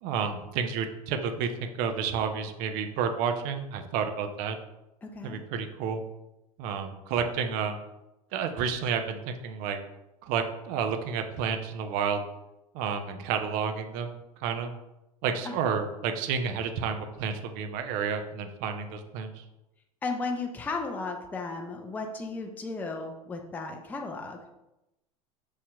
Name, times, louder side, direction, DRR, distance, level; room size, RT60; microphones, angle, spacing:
voice 1, 0.0-4.6 5.2-6.0 6.6-7.8 8.3-9.8 10.2-12.2 12.7-14.7 15.2-19.4, right 6 dB, 45° right, 7 dB, 0.5 m, -30 dB
voice 2, 5.0-5.4 15.4-15.5 20.0-24.4, left 3 dB, 10° left, 3 dB, 0.4 m, -35 dB
6.3 x 2.8 x 2.2 m, 0.93 s
figure-of-eight pair, 80°, 20 cm